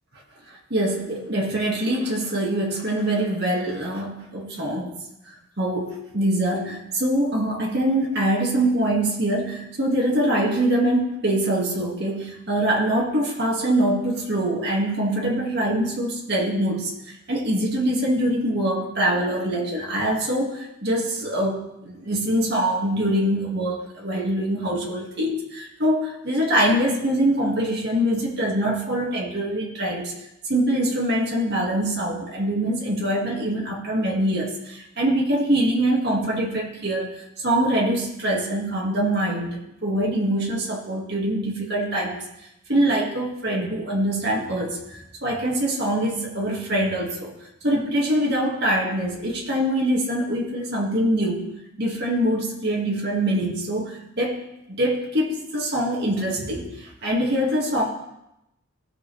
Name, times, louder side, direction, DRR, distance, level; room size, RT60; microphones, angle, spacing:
voice 1, 0.7-5.0 5.6-16.9 17.3-30.1 30.5-37.2 37.4-39.5 39.8-42.2 42.7-47.3 47.6-51.5 51.8-54.4 54.7-56.7 57.0-57.8, right 1 dB, 55° right, -2 dB, 2.1 m, -24 dB
16.0 x 6.6 x 3.4 m, 0.85 s
head